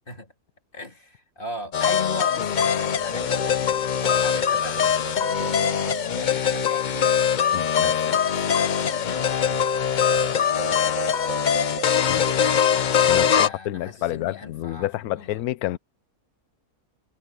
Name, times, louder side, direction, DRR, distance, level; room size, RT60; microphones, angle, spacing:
voice 1, 0.7-7.1 7.6-11.1 12.3-15.4, left 2 dB, 35° left, 3.2 m, -39 dB
sound 1, 1.7-13.5, left 8 dB, 55° left, 0.5 m, -22 dB
sound 2, 3.0-7.8 8.0-8.1 8.8-13.5, right 15 dB, 55° right, 3.2 m, -39 dB
voice 2, 7.5-7.9 12.1-12.2 13.1-15.8, left 14 dB, 80° left, 1.1 m, -29 dB
omnidirectional pair, 1.6 m